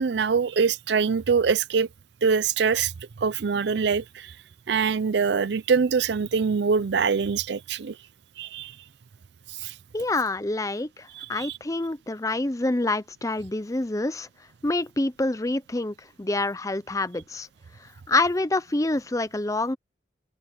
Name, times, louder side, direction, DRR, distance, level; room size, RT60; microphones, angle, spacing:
voice 1, 0.0-1.9 2.2-2.9 3.2-4.0 4.7-7.9 8.4-8.7 9.6-9.7 11.2-11.5, right 5 dB, 70° right, 0.5 m, -24 dB
voice 2, 9.9-14.3 14.6-17.5 18.1-19.8, left 2 dB, 20° left, 0.6 m, -27 dB
head